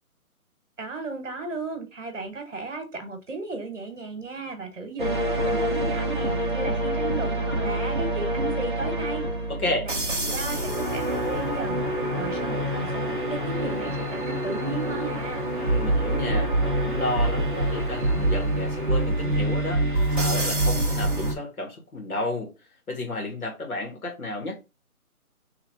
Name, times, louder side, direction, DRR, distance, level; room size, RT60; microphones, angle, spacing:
voice 1, 0.8-9.2 9.8-15.5, right 4 dB, 55° right, 1.2 m, -35 dB
sound 1, 5.0-21.3, right 1 dB, 35° right, 0.7 m, -26 dB
voice 2, 9.5-9.9 15.6-22.5 22.9-24.5, left 2 dB, 75° left, 2.1 m, -32 dB
3.5 x 3.2 x 3.7 m
hypercardioid pair, 175°, 44 cm